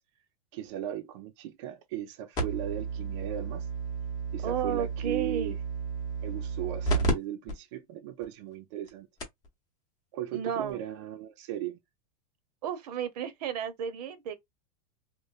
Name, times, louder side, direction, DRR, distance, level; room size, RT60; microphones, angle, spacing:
voice 1, 0.5-3.7 4.3-5.6 6.2-9.1 10.1-11.8, right 12 dB, 50° right, 0.4 m, -37 dB
sound 1, 2.4-7.1 7.5-7.6 8.2-8.3 8.9-9.0 9.2-9.5 10.7-10.8, right 4 dB, 20° left, 0.7 m, -32 dB
voice 2, 4.4-5.6 10.3-10.8 12.6-14.4, right 8 dB, 80° right, 0.7 m, -33 dB
3.0 x 2.0 x 2.3 m
supercardioid pair, 175°, 20 cm